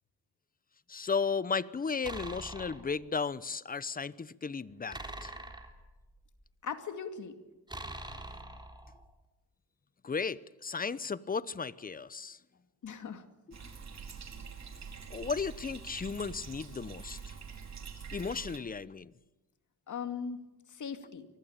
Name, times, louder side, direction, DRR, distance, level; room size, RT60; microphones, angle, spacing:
voice 1, 0.9-5.3 10.0-12.4 15.1-17.3 18.1-19.1, left 5 dB, 25° left, 0.9 m, -35 dB
sound 1, 2.0-2.9 4.9-6.4 7.7-9.1, right 1 dB, 10° right, 3.7 m, -44 dB
voice 2, 6.6-7.4 12.8-13.2 13.6-13.7 19.9-20.4 20.7-21.3, left 6 dB, 55° left, 2.4 m, -39 dB
Bathtub (filling or washing), 13.5-18.6, right 6 dB, 50° right, 4.5 m, -45 dB
23.5 x 19.0 x 8.9 m
cardioid pair, 85°, 35 cm